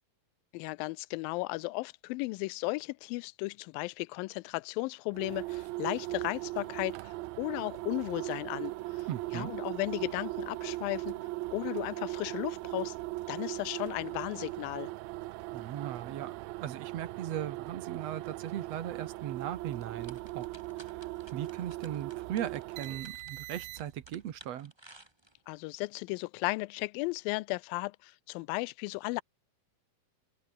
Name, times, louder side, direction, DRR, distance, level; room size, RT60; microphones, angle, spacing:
voice 1, 0.5-9.1 9.3-11.3 11.5-13.0 13.3-14.9 25.5-29.2, left 23 dB, 85° left, 2.3 m, -35 dB
sound 1, 5.1-24.1, right 19 dB, 90° right, 2.5 m, -39 dB
voice 2, 9.1-9.5 15.5-20.5 20.8-24.7, right 11 dB, 60° right, 1.9 m, -38 dB
sound 2, 19.7-25.6, right 1 dB, 10° right, 2.1 m, -55 dB
omnidirectional pair, 4.2 m